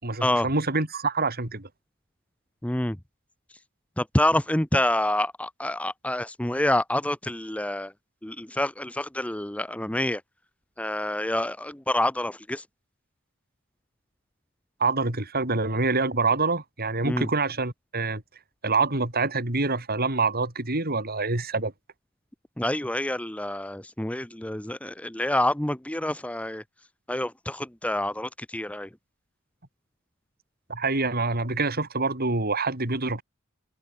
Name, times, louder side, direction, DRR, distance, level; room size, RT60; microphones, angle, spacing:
voice 1, 0.0-1.7 14.8-18.2 18.6-21.7 30.7-33.2, right 3 dB, 45° right, 4.3 m, -26 dB
voice 2, 2.6-3.0 4.0-7.9 8.2-10.2 10.8-12.6 17.0-17.3 22.6-26.6 27.1-28.9, left 1 dB, 5° left, 0.9 m, -27 dB
head